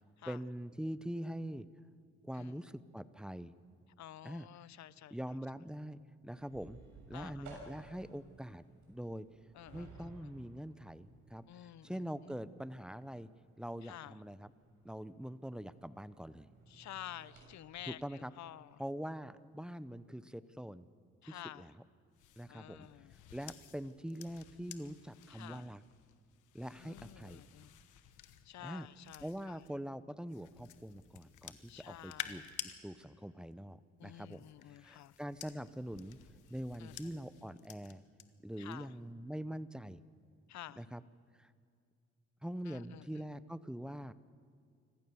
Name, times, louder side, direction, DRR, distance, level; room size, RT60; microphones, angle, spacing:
voice 1, 0.3-1.7 2.2-3.5 4.2-4.5 5.1-6.8 7.1-9.3 9.7-11.4 11.8-13.3 13.6-14.5 14.8-16.5 17.9-18.3 18.8-20.8 21.3-21.7 22.4-22.9 23.3-25.8 26.5-27.4 28.6-28.9 29.2-32.4 32.8-34.4 34.8-36.2 36.5-38.0 38.4-40.0 40.8-41.0 41.4-41.5 42.4-44.1, equal, 5° right, 15 dB, 0.7 m, -43 dB
voice 2, 4.0-5.2 7.1-7.5 9.5-10.3 11.5-12.3 13.8-14.2 16.7-18.8 21.2-21.7 22.5-23.2 25.3-25.7 26.8-27.7 28.4-29.7 31.7-32.5 34.0-35.2 36.8-36.9 38.6-38.9 40.5-40.9 42.7-43.2, left 13 dB, 65° left, 19 dB, 0.7 m, -51 dB
sound 1, 6.3-17.5, right 2 dB, 80° right, 6.6 m, -58 dB
sound 2, 22.1-29.7 30.3-32.7 34.0-38.2 38.6-39.0, left 11 dB, 85° left, 1.2 m, -52 dB
26.0 x 15.0 x 7.0 m, 2.2 s
cardioid pair, 90°, 30 cm